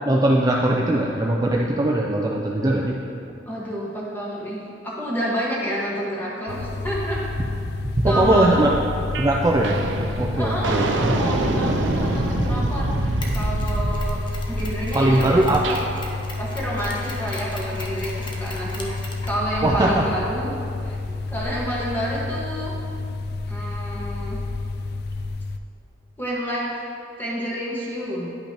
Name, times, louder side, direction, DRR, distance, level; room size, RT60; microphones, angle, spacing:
voice 1, 0.0-3.0 8.0-8.7 9.2-9.8 10.2-11.2 14.9-15.8 19.6-20.1, right 1 dB, 20° right, -2 dB, 0.4 m, -20 dB
voice 2, 3.5-7.2 8.0-8.6 10.4-14.2 14.5-15.8 16.4-20.6 20.8-22.7 23.5-24.4 26.2-26.7 27.2-28.3, equal, 10° left, -6 dB, 1.4 m, -29 dB
sound 1, 6.5-25.6, left 3 dB, 55° left, 0.3 m, -30 dB
sound 2, 9.1-9.3 9.6-15.8, right 2 dB, 70° right, 0.5 m, -26 dB
Mechanisms, 13.2-21.4, left 2 dB, 25° left, 0.7 m, -40 dB
10.5 x 5.5 x 2.9 m, 2.6 s
head